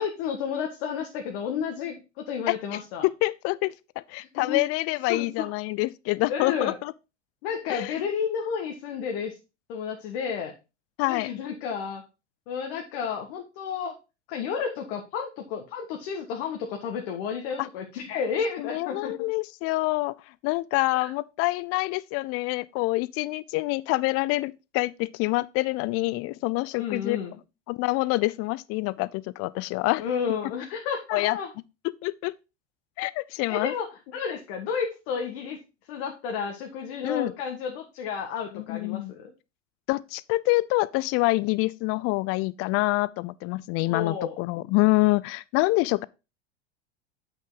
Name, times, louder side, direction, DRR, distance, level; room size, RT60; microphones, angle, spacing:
voice 1, 0.0-3.0 4.2-4.6 5.1-5.5 6.3-6.8 7.4-9.4 9.7-10.5 11.0-12.0 12.5-13.9 14.3-19.1 20.9-21.1 26.8-27.4 30.0-31.5 33.5-35.6 35.9-39.3 43.8-44.3, left 6 dB, 60° left, 1.6 m, -31 dB
voice 2, 3.0-3.7 4.1-6.9 7.7-7.9 11.0-11.3 17.6-17.7 18.6-20.1 20.4-27.2 27.7-30.0 31.1-31.4 32.0-32.3 33.0-33.7 37.0-37.3 38.5-39.1 39.9-46.0, left 22 dB, 40° left, 0.5 m, -26 dB
8.2 x 6.0 x 3.8 m
hypercardioid pair, 90°, 36 cm